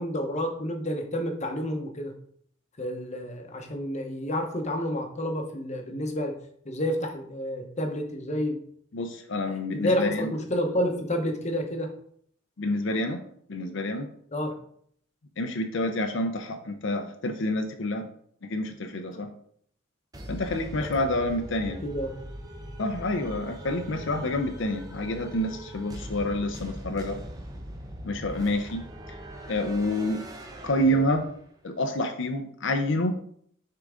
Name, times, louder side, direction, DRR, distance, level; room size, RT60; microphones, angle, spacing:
voice 1, 0.0-2.1 2.8-6.4 6.6-8.6 9.7-11.9 14.3-14.6 20.9-21.2 21.7-22.1, equal, 35° left, 4 dB, 0.9 m, -30 dB
voice 2, 8.9-10.3 12.6-13.2 13.5-14.1 15.4-18.1 18.4-19.3 20.3-21.8 22.8-27.2 28.0-28.8 29.5-30.2 30.6-31.2 31.6-33.2, left 1 dB, 60° left, 5 dB, 0.6 m, -28 dB
sound 1, 20.1-31.5, equal, 20° right, 0.6 m, -41 dB
6.7 x 3.8 x 3.7 m, 0.64 s
head